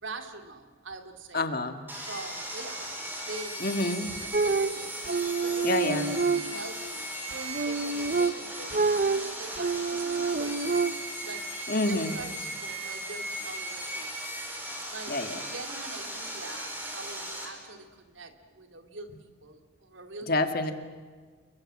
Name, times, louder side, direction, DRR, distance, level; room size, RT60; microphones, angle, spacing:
voice 1, 0.0-1.5 2.1-3.7 4.2-5.1 5.4-7.1 7.6-11.5 11.9-14.5 14.9-15.2 15.5-20.6, right 3 dB, 75° right, 6 dB, 2.8 m, -44 dB
voice 2, 1.3-1.8 3.6-4.2 5.6-6.1 11.7-12.2 15.1-15.4 20.3-20.7, left 2 dB, 50° left, 7 dB, 2.0 m, -28 dB
Sawing, 1.9-17.5, right 1 dB, 10° right, 5.0 m, -37 dB
sound 1, 4.3-6.9 7.3-11.2, right 4 dB, 45° right, 0.8 m, -28 dB
29.0 x 24.0 x 7.7 m, 1.5 s
head